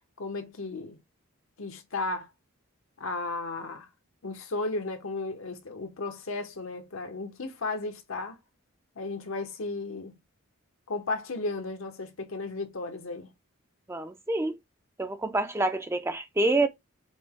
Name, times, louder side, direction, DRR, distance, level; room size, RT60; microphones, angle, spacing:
voice 1, 0.2-1.0 1.6-2.3 3.0-3.9 4.2-8.4 9.0-10.2 10.9-13.3, left 3 dB, 70° left, 0.8 m, -34 dB
voice 2, 13.9-14.5 15.0-16.7, right 2 dB, 10° right, 0.4 m, -27 dB
5.0 x 2.1 x 3.6 m
head